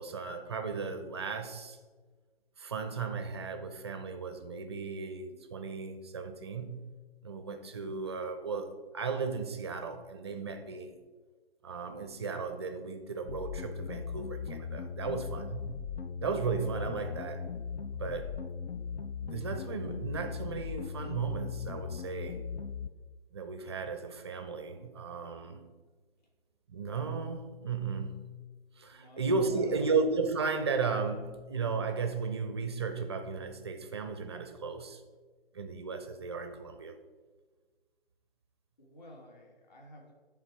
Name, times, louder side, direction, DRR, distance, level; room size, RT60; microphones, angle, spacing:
voice 1, 0.0-1.8 2.6-6.9 7.2-11.0 11.6-15.8 16.2-17.5 17.9-18.3 19.3-22.4 23.3-25.6 26.7-28.2 28.8-35.0 35.5-36.9, right 4 dB, 25° right, 7 dB, 0.5 m, -35 dB
sound 1, 13.3-22.9, left 6 dB, 85° left, 0.5 m, -39 dB
voice 2, 28.9-29.9 38.8-40.1, left 1 dB, 45° left, 0 dB, 1.6 m, -53 dB
10.0 x 3.5 x 4.6 m, 1.4 s
hypercardioid pair, 150°, 31 cm